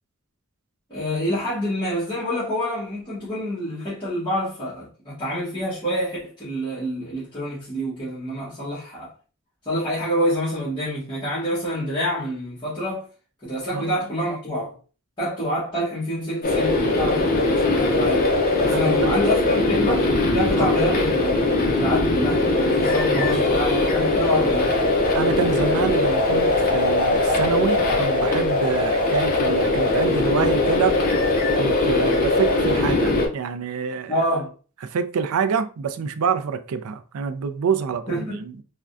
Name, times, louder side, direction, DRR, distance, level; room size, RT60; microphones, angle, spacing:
voice 1, 0.9-9.1 9.6-13.1 13.4-14.8 15.2-24.8 34.1-34.5 38.1-38.4, equal, 20° left, 1.0 m, -27 dB
sound 1, 16.4-33.3, left 2 dB, 40° left, 0.6 m, -20 dB
voice 2, 18.7-19.1 20.6-20.7 25.1-31.0 31.6-34.2 34.8-38.5, right 6 dB, 80° right, 0.4 m, -26 dB
3.4 x 2.2 x 2.5 m
head